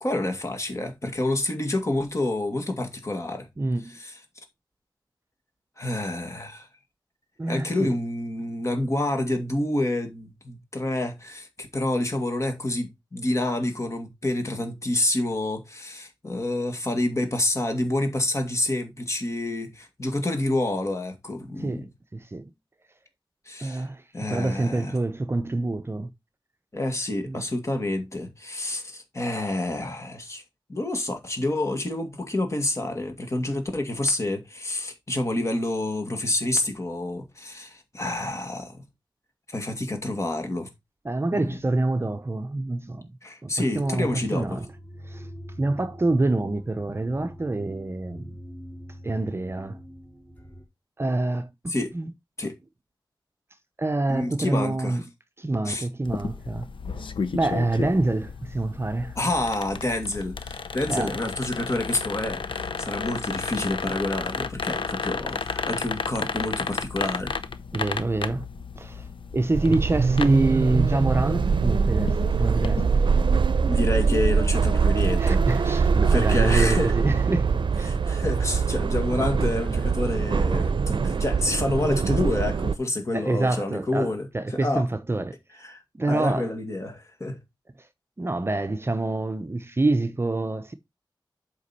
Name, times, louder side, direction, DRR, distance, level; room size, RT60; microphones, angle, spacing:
voice 1, 0.0-3.5 3.9-4.2 5.8-6.7 7.5-21.9 23.5-23.8 24.1-24.9 26.7-30.4 30.7-38.8 39.5-40.7 41.3-41.6 43.2-44.6 51.7-52.0 52.4-52.5 54.1-55.0 55.7-55.9 59.2-67.4 73.7-75.8 76.1-76.9 77.9-84.9 85.6-85.8 86.1-87.4, left 1 dB, 35° left, 2.2 m, -28 dB
voice 2, 3.6-4.0 7.4-7.9 21.6-21.9 22.1-22.5 23.6-24.0 24.3-26.1 27.3-27.4 41.0-43.2 43.4-44.7 45.0-45.3 45.6-48.3 49.0-49.8 51.0-52.1 53.8-55.0 55.4-56.7 57.3-59.2 60.9-61.2 67.7-68.5 68.8-69.1 69.3-73.1 75.2-77.9 83.1-85.4 85.9-86.5 88.2-90.7, right 2 dB, 30° right, 0.7 m, -26 dB
sound 1, 43.7-50.6, equal, 20° left, 3.4 m, -43 dB
sound 2, 56.0-72.9, left 5 dB, 80° left, 0.8 m, -33 dB
sound 3, 69.5-82.8, right 5 dB, 70° right, 0.6 m, -23 dB
8.1 x 5.3 x 4.2 m
wide cardioid pair, 100°, 8 cm